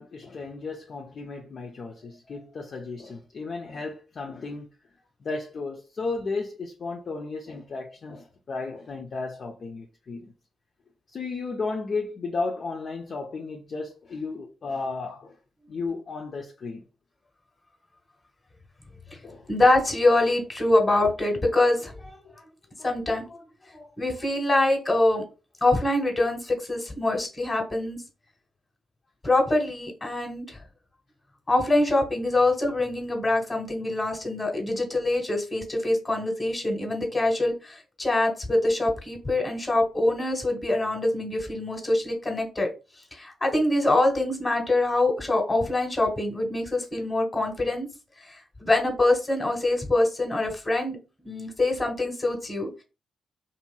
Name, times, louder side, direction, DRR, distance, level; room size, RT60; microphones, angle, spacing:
voice 1, 0.0-4.7 5.2-10.3 11.1-15.4 15.7-16.8 19.2-19.5, left 3 dB, 55° left, 0.4 m, -34 dB
voice 2, 19.5-22.2 22.8-23.4 23.7-25.2 25.6-28.0 29.2-30.6 31.5-42.7 43.1-47.9 48.2-51.0 51.2-52.8, left 2 dB, 30° left, 1.4 m, -24 dB
2.8 x 2.6 x 2.2 m
hypercardioid pair, 45°, 0 cm